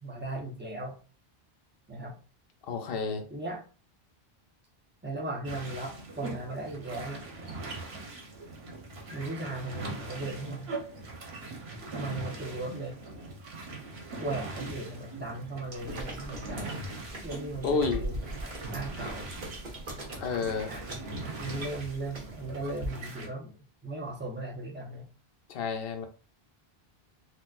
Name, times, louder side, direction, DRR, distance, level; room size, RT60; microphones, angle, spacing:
voice 1, 0.0-1.0 1.9-2.1 3.3-3.6 5.0-7.3 9.1-10.7 11.9-13.0 14.2-16.8 17.2-19.3 20.7-23.5 23.8-25.0, right 2 dB, 10° right, 0.7 m, -37 dB
voice 2, 2.7-3.3 17.6-18.0 20.2-20.7 25.5-26.1, left 5 dB, 70° left, 0.8 m, -30 dB
sound 1, 5.4-23.3, right 2 dB, 75° right, 1.1 m, -41 dB
sound 2, 15.7-22.9, right 1 dB, 50° right, 1.2 m, -41 dB
4.0 x 2.4 x 2.4 m
omnidirectional pair, 1.0 m